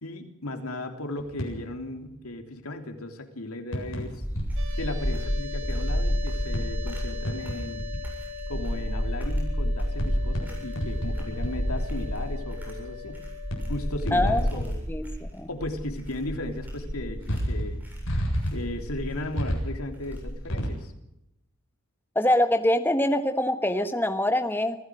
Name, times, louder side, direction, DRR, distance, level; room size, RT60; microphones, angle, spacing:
voice 1, 0.0-4.2 4.7-7.8 8.5-13.2 13.7-14.8 15.5-17.8 18.5-20.9, left 1 dB, 85° left, 6 dB, 3.4 m, -36 dB
sound 1, 1.2-1.9 3.7-4.7 5.0-5.1 6.5-8.1 8.6-8.7 10.0-11.7 12.0-12.1 13.5-13.7 14.1-15.0 15.2-15.3 17.2-20.7, equal, 65° left, 8.0 m, -31 dB
sound 2, 3.7-20.6, equal, 10° right, 7.6 m, -31 dB
sound 3, 4.6-14.6, left 5 dB, 60° right, 7.3 m, -41 dB
voice 2, 14.1-14.4 14.9-15.1 15.3-15.5 22.1-24.8, left 1 dB, 10° left, 8 dB, 1.3 m, -24 dB
26.0 x 16.0 x 6.4 m, 0.83 s
head